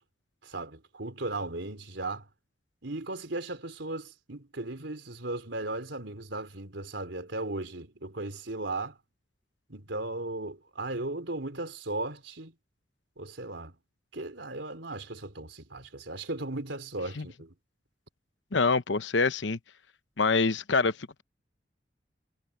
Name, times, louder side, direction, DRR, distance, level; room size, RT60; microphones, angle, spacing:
voice 1, 0.4-2.3 2.8-9.0 9.7-12.5 13.2-13.8 14.1-17.5, right 2 dB, 85° right, 3.5 m, -36 dB
voice 2, 18.5-19.6 20.2-21.2, left 4 dB, 90° left, 1.0 m, -26 dB
head